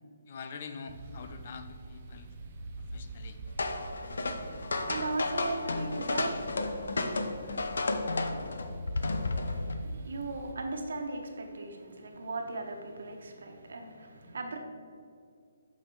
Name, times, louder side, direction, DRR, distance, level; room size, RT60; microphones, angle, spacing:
voice 1, 0.3-2.3 2.9-3.4, left 5 dB, 35° left, 8 dB, 0.5 m, -44 dB
sound 1, 0.9-10.5, right 2 dB, 30° right, 0.7 m, -46 dB
sound 2, 3.6-9.7, left 2 dB, 85° left, 0.9 m, -32 dB
voice 2, 4.1-6.4 9.1-14.6, right 3 dB, 70° right, 3 dB, 1.4 m, -38 dB
8.1 x 5.9 x 4.8 m, 2.3 s
hypercardioid pair, 175°, 0 cm